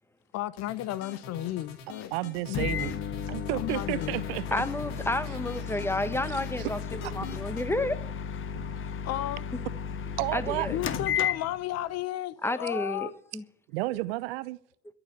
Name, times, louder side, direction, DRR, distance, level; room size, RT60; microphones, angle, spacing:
voice 1, 0.3-2.1 2.5-2.7 3.5-4.3 9.0-9.4 10.7-13.1, left 14 dB, 55° left, 0.9 m, -33 dB
sound 1, 0.6-7.7, left 5 dB, 80° left, 2.4 m, -45 dB
voice 2, 2.1-2.9 3.3-4.4 8.5-8.6 10.2-10.7 13.7-14.6, right 19 dB, 75° right, 0.7 m, -31 dB
Microwave oven, 2.5-11.9, left 7 dB, 40° left, 1.3 m, -34 dB
voice 3, 4.5-8.0 10.3-10.8 12.4-13.4, left 1 dB, 10° left, 1.3 m, -31 dB
13.0 x 7.1 x 9.3 m
hypercardioid pair, 75°, 30 cm